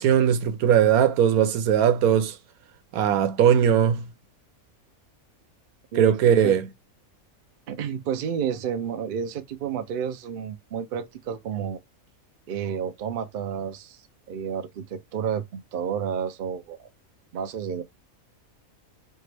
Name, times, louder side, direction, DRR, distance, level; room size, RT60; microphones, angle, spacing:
voice 1, 0.0-2.3 2.9-4.0 5.9-6.6, right 9 dB, 90° right, 1.1 m, -19 dB
voice 2, 5.9-6.6 7.7-11.8 12.5-14.0 14.3-16.9 17.3-17.8, right 7 dB, 55° right, 0.6 m, -31 dB
4.5 x 2.5 x 3.2 m
omnidirectional pair, 1.5 m